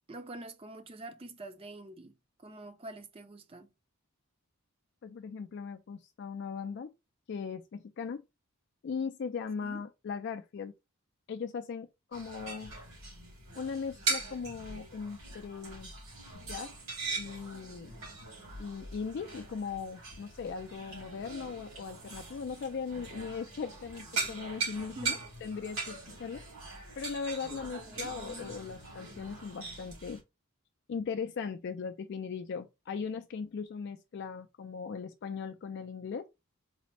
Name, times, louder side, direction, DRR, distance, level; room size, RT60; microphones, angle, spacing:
voice 1, 0.1-3.7 9.6-9.8 24.9-25.2 27.6-28.1, right 2 dB, 25° right, 0.5 m, -46 dB
voice 2, 5.0-6.9 7.3-8.2 8.8-10.7 11.3-12.7 13.6-15.9 16.3-16.7 17.2-17.9 18.6-26.4 27.0-30.2 30.9-36.3, left 5 dB, 50° left, 0.3 m, -39 dB
sound 1, 12.1-30.2, right 4 dB, 80° right, 2.6 m, -40 dB
4.1 x 2.0 x 4.1 m
head